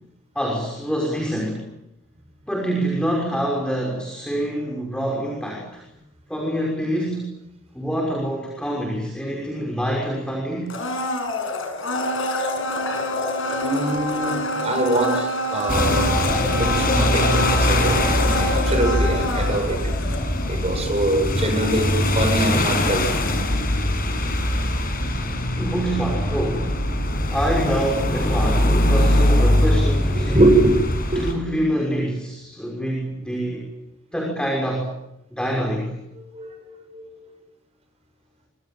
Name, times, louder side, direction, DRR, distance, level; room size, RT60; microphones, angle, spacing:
voice 1, 0.3-1.6 2.5-5.8 6.3-7.3 7.7-10.7 25.6-26.8 27.3-30.4 31.1-33.7 34.1-34.9 35.3-35.9, equal, 5° left, -1 dB, 6.0 m, -26 dB
Domestic sounds home sounds, 10.7-20.6 20.9-21.0, left 1 dB, 70° left, 7.9 m, -26 dB
voice 2, 13.5-16.2 16.6-19.8 20.1-20.2 20.5-23.2 30.1-31.2 36.1-37.3, right 1 dB, 30° right, 4 dB, 7.8 m, -23 dB
sound 1, 15.7-31.3, left 1 dB, 45° left, 7.1 m, -21 dB
27.0 x 26.0 x 7.7 m, 0.84 s
head